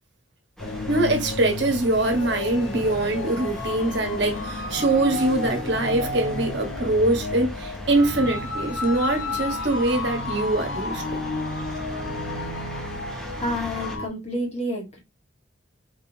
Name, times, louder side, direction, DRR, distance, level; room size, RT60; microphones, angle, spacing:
sound 1, 0.6-14.1, left 2 dB, 80° left, 1.1 m, -32 dB
sound 2, 0.6-14.0, equal, ahead, 0.9 m, -39 dB
voice 1, 0.9-11.2, right 2 dB, 60° right, 1.2 m, -23 dB
voice 2, 13.1-15.0, equal, 30° left, 1.6 m, -30 dB
4.9 x 3.8 x 2.7 m
head